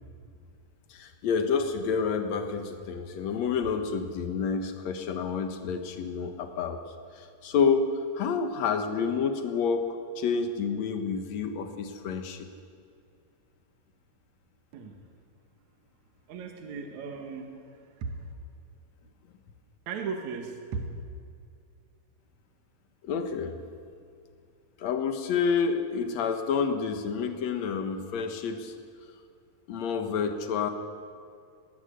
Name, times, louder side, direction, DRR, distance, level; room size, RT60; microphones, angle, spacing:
voice 1, 0.9-6.8 7.4-9.8 10.2-12.4 23.1-23.5 24.8-28.7 29.7-30.7, left 6 dB, 60° left, 6 dB, 2.3 m, -29 dB
voice 2, 16.3-18.2 19.9-20.9, right 5 dB, 60° right, 4 dB, 2.7 m, -37 dB
19.5 x 19.0 x 8.2 m, 2.4 s
omnidirectional pair, 4.2 m